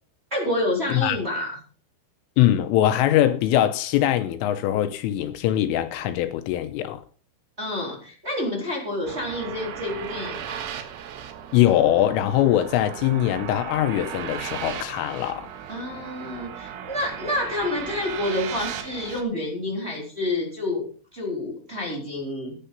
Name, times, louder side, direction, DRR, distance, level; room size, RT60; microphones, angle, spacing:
voice 1, 0.3-1.6 7.6-10.6 15.7-22.5, left 1 dB, 15° right, 3.4 m, -29 dB
voice 2, 2.4-7.0 11.5-15.5, left 12 dB, 80° left, 3.3 m, -22 dB
sound 1, 9.1-19.2, right 9 dB, 80° right, 4.1 m, -36 dB
15.0 x 10.0 x 5.4 m
omnidirectional pair, 6.0 m